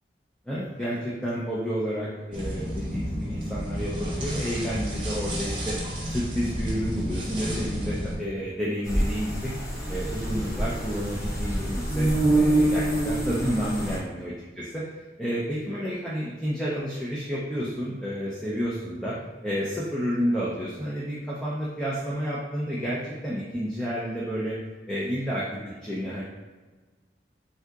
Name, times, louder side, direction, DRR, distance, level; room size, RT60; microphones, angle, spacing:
voice 1, 0.5-5.8 6.0-9.5 9.9-14.8 15.2-19.1 19.4-24.6 24.9-26.2, equal, 5° left, -8 dB, 0.4 m, -30 dB
sound 1, 2.3-8.2, equal, 30° right, 0.7 m, -31 dB
sound 2, 8.8-14.0, right 1 dB, 60° left, 1.1 m, -26 dB
3.4 x 2.7 x 2.3 m, 1.3 s
head